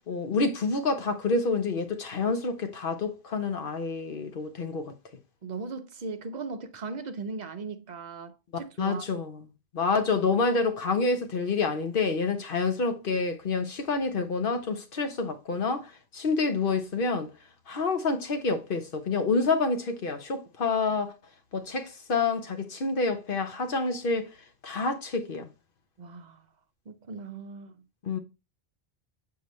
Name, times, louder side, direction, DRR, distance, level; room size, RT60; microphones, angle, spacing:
voice 1, 0.1-4.9 8.8-9.4 9.7-17.3 17.7-21.1 21.5-24.3 24.6-25.5 28.0-28.2, left 4 dB, 60° left, 1.0 m, -28 dB
voice 2, 5.4-9.1 26.0-26.5 26.9-27.8, right 4 dB, 50° right, 0.7 m, -38 dB
6.8 x 4.7 x 3.1 m
omnidirectional pair, 1.1 m